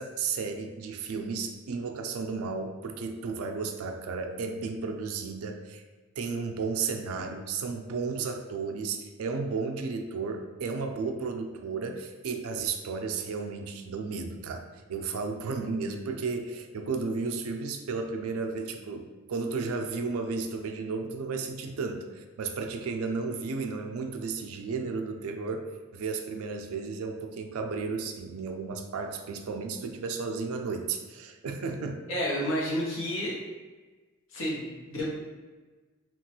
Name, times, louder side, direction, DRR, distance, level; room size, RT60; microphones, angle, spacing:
voice 1, 0.0-5.8 6.2-25.7 25.9-32.1, right 4 dB, 85° right, 5 dB, 0.4 m, -33 dB
voice 2, 32.1-33.4 34.3-35.1, equal, 65° left, -4 dB, 0.8 m, -30 dB
3.0 x 2.3 x 2.9 m, 1.3 s
head